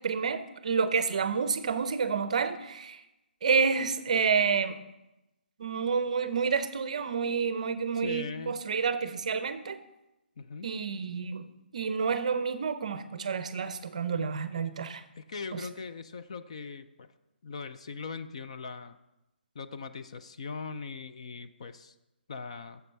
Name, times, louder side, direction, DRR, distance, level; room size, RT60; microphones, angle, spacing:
voice 1, 0.0-3.0 3.4-4.8 5.6-9.8 10.6-11.5 11.7-15.0 15.5-15.6, right 5 dB, 40° right, 12 dB, 0.6 m, -29 dB
voice 2, 7.9-8.6 10.4-10.7 15.2-17.1 17.4-19.0 19.6-21.9 22.3-22.8, left 4 dB, 35° left, 10 dB, 0.4 m, -40 dB
7.7 x 7.0 x 5.4 m, 0.94 s
hypercardioid pair, 175°, 6 cm